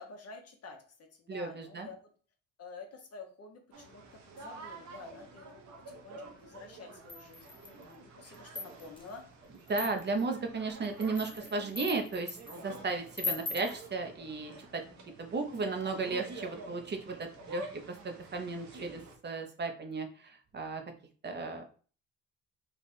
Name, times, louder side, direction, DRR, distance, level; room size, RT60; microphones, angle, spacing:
voice 1, 0.0-2.1 2.6-9.2, left 4 dB, 55° left, 3 dB, 1.0 m, -50 dB
voice 2, 1.3-1.9 9.7-12.4 12.6-14.8 15.2-20.8 21.2-21.7, right 3 dB, 35° right, 5 dB, 0.7 m, -35 dB
sound 1, 3.7-19.1, right 2 dB, 65° right, 1.1 m, -49 dB
sound 2, 7.1-7.8 8.3-9.0 9.7-10.2 10.8-12.6 13.1-13.8, left 3 dB, 15° left, 0.6 m, -39 dB
3.4 x 2.4 x 4.1 m, 0.39 s
cardioid pair, 90°, 30 cm